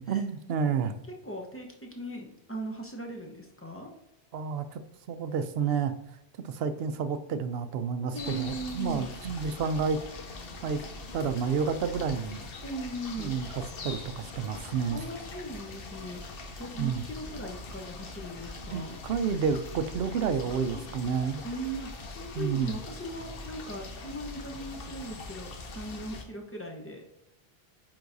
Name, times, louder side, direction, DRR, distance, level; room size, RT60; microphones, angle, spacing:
voice 1, 0.1-1.0 4.3-4.8 5.1-5.9 6.4-10.0 10.6-10.8 11.1-12.5 13.2-13.5 13.8-15.0 16.8-17.0 18.7-21.4 22.3-22.8, right 6 dB, 70° right, 11 dB, 0.8 m, -30 dB
voice 2, 1.2-3.9 8.1-9.1 12.6-13.3 14.9-19.0 20.7-20.8 21.4-27.1, right 1 dB, 15° left, 0 dB, 0.9 m, -39 dB
sound 1, 8.1-26.2, left 3 dB, 65° left, 1.0 m, -42 dB
9.3 x 3.9 x 2.6 m, 0.89 s
omnidirectional pair, 1.1 m